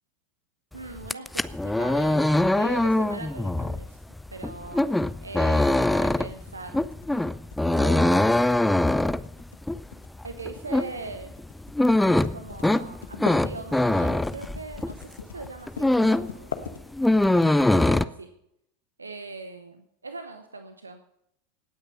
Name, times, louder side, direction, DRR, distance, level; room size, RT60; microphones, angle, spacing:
voice 1, 0.7-4.0 4.3-4.9 5.2-6.8 7.7-8.4 10.2-11.3 12.3-16.6 17.3-18.3 19.0-21.0, right 3 dB, 80° right, 8 dB, 0.9 m, -40 dB
sound 1, 1.0-15.0 15.4-16.4 16.6-18.0, left 1 dB, 5° left, 0.5 m, -23 dB
sound 2, 6.3-17.3, left 7 dB, 70° left, 1.2 m, -41 dB
17.5 x 9.4 x 5.4 m, 0.76 s
figure-of-eight pair, 80°, 0 cm